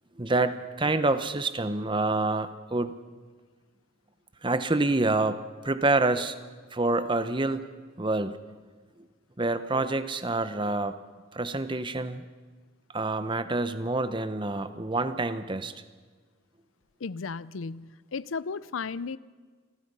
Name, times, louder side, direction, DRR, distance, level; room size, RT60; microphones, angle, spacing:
voice 1, 0.2-2.9 4.4-6.4 6.7-7.7 8.0-8.4 9.4-10.9 11.3-12.2 12.9-15.7, right 2 dB, 25° right, 11 dB, 0.9 m, -27 dB
voice 2, 17.0-19.2, left 5 dB, 85° left, 19 dB, 0.6 m, -34 dB
28.5 x 20.0 x 5.5 m, 1.4 s
head